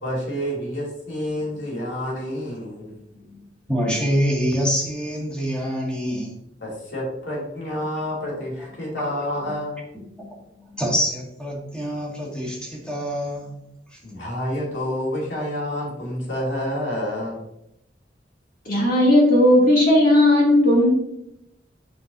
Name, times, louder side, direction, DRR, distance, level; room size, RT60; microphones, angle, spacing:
voice 1, 0.0-2.9 6.6-9.8 14.0-17.4, left 1 dB, 75° left, -4 dB, 2.7 m, -28 dB
voice 2, 3.1-3.4 3.7-6.3 9.0-9.5 10.1-10.2 10.5-14.0, equal, 5° left, -3 dB, 2.1 m, -26 dB
voice 3, 18.7-20.9, left 1 dB, 55° left, -4 dB, 2.7 m, -16 dB
7.8 x 5.9 x 2.7 m, 0.79 s
head